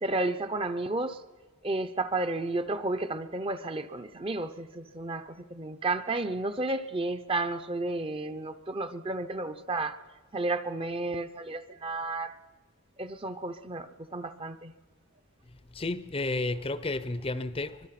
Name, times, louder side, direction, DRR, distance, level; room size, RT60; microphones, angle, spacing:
voice 1, 0.0-1.2 1.6-10.0 10.3-12.3 13.0-14.7, right 2 dB, 25° right, 0.7 m, -32 dB
voice 2, 15.5-17.9, left 2 dB, 25° left, 0.6 m, -32 dB
24.5 x 21.5 x 5.9 m
head